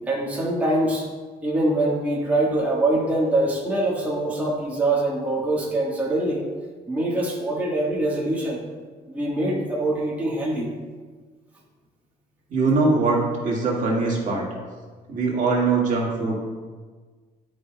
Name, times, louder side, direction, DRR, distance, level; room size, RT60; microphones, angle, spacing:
voice 1, 0.1-1.1 1.4-6.5 6.9-8.6 9.1-10.7, right 1 dB, 10° right, -5 dB, 1.3 m, -24 dB
voice 2, 12.5-14.5 15.1-16.3, right 3 dB, 50° right, -3 dB, 1.8 m, -22 dB
10.0 x 5.1 x 2.2 m, 1.4 s
cardioid pair, 110°, 17 cm